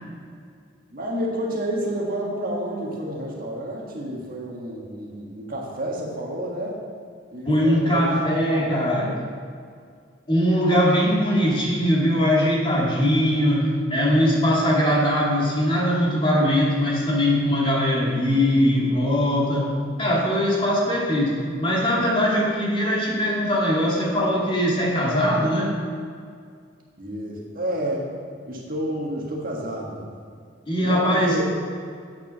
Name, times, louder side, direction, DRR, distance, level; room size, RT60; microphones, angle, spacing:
voice 1, 0.9-6.8 7.3-9.3 14.7-14.8 27.0-28.1 28.5-30.0 30.8-31.5, right 1 dB, 50° right, -2 dB, 1.5 m, -30 dB
voice 2, 7.5-9.1 10.3-19.7 20.0-25.7 30.7-31.4, equal, 30° left, -5 dB, 2.0 m, -21 dB
8.6 x 5.8 x 6.1 m, 2.2 s
head